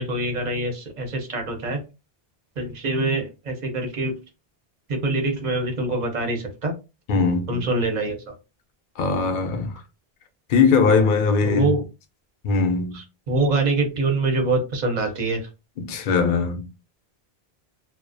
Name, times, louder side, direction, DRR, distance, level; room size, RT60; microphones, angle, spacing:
voice 1, 0.0-1.8 2.6-4.2 4.9-6.7 7.5-8.3 11.4-11.8 12.9-15.5, right 2 dB, 50° right, 0.8 m, -25 dB
voice 2, 7.1-7.6 9.0-9.8 10.5-11.7 12.4-13.0 15.8-16.7, left 4 dB, 60° left, 0.6 m, -20 dB
2.3 x 2.1 x 2.5 m
omnidirectional pair, 1.0 m